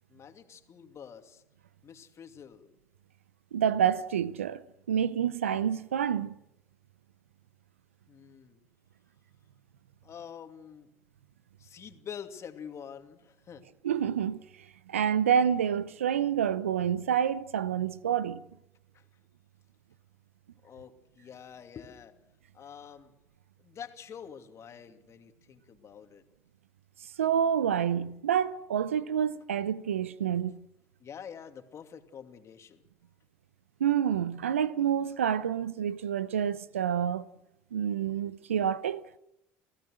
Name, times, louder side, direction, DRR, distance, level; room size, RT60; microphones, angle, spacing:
voice 1, 0.1-1.4 1.8-2.8 8.1-8.6 10.0-10.9 11.6-13.6 18.9-19.1 20.6-22.2 22.5-23.1 23.6-26.2 31.0-32.8 38.1-38.2, left 8 dB, 45° left, 2.4 m, -47 dB
voice 2, 3.5-6.3 13.8-14.4 14.9-18.4 27.2-30.6 33.8-37.3 37.7-39.0, right 8 dB, 90° right, 0.7 m, -28 dB
28.0 x 16.0 x 6.4 m
hypercardioid pair, 65°, 7 cm